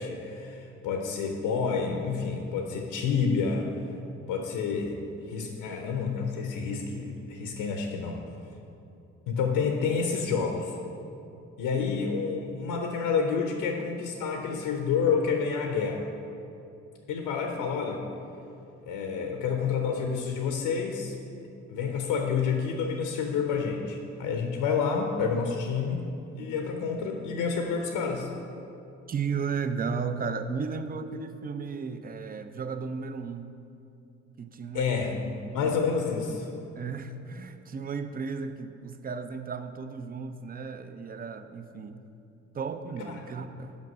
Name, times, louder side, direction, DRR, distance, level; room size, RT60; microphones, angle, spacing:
voice 1, 0.0-3.7 4.3-8.2 9.3-10.8 11.6-16.1 17.1-18.1 18.8-21.1 21.7-26.1 26.3-28.3 34.7-36.5 43.1-43.2, left 5 dB, 75° left, 3 dB, 0.7 m, -29 dB
voice 2, 29.1-33.5 34.4-35.2 36.8-42.0 42.5-43.8, right 5 dB, 25° right, 9 dB, 0.5 m, -34 dB
5.3 x 5.2 x 5.3 m, 2.7 s
hypercardioid pair, 50°, 35 cm